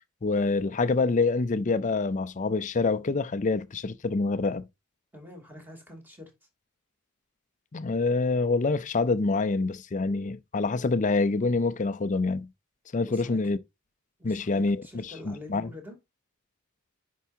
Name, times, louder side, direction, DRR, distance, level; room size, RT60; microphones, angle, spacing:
voice 1, 0.2-4.6 7.7-12.5 12.9-13.6 14.2-15.7, left 3 dB, 35° left, 0.5 m, -26 dB
voice 2, 5.1-6.3 13.0-13.4 14.2-16.0, left 1 dB, 10° right, 2.8 m, -45 dB
10.0 x 4.7 x 2.7 m
head